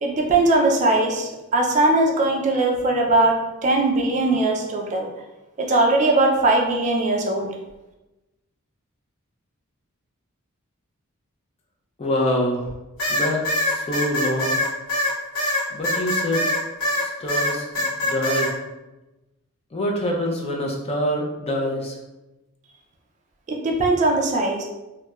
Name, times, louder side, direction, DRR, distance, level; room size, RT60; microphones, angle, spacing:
voice 1, 0.0-3.4 3.6-5.1 5.6-7.5 23.5-24.6, right 2 dB, 35° right, 1 dB, 0.3 m, -20 dB
voice 2, 12.0-12.7 13.1-14.7 15.7-16.5 17.0-18.5 19.7-22.0, equal, 30° left, 0 dB, 0.4 m, -25 dB
sound 1, 13.0-17.0 17.3-18.5, left 1 dB, 75° left, 0.8 m, -23 dB
2.9 x 2.1 x 2.2 m, 1.0 s
head